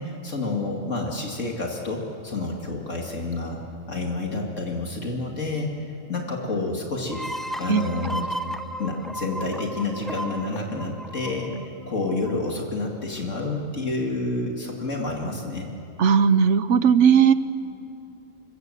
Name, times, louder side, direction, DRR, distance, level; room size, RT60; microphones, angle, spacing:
voice 1, 0.0-3.6 3.9-7.3 7.6-8.3 8.8-15.7, left 2 dB, 70° left, 0 dB, 2.7 m, -29 dB
sound 1, 7.1-12.6, equal, ahead, 0.7 m, -35 dB
voice 2, 16.0-17.3, right 7 dB, 65° right, 13 dB, 1.1 m, -17 dB
26.0 x 23.0 x 7.7 m, 2.7 s
omnidirectional pair, 1.3 m